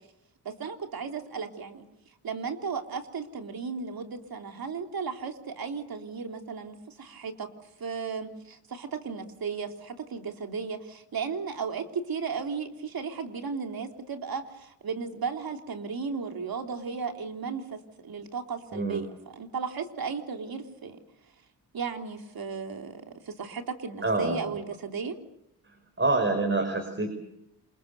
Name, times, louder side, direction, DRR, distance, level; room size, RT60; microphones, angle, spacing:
voice 1, 0.5-1.9 2.2-7.5 7.8-21.0 21.7-25.2, right 5 dB, 60° right, 4 dB, 3.4 m, -35 dB
voice 2, 18.7-19.0 24.0-24.4 26.0-27.1, right 3 dB, 30° right, 5 dB, 5.3 m, -26 dB
27.5 x 22.5 x 6.9 m, 0.80 s
supercardioid pair, 55°, 41 cm